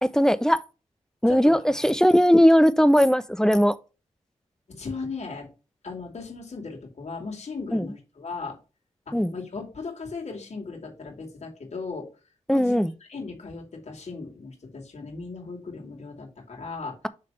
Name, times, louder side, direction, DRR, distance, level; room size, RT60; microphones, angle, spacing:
voice 1, 0.0-0.6 1.2-3.7 7.7-7.9 9.1-9.3 12.5-12.9, equal, 5° left, 0.5 m, -19 dB
voice 2, 1.3-2.0 3.5-3.6 4.7-5.5 5.8-8.6 9.1-12.1 12.5-17.0, left 4 dB, 60° left, 2.4 m, -37 dB
6.6 x 3.4 x 5.4 m
wide cardioid pair, 80°, 13 cm